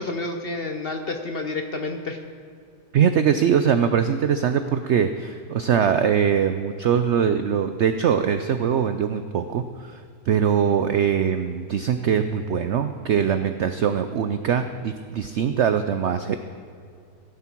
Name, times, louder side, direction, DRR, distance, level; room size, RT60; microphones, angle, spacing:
voice 1, 0.0-2.2, left 2 dB, 50° left, 5 dB, 0.8 m, -29 dB
voice 2, 2.9-10.0 10.3-16.4, right 8 dB, 75° right, 9 dB, 0.6 m, -22 dB
16.5 x 11.0 x 4.5 m, 2.3 s
omnidirectional pair, 1.8 m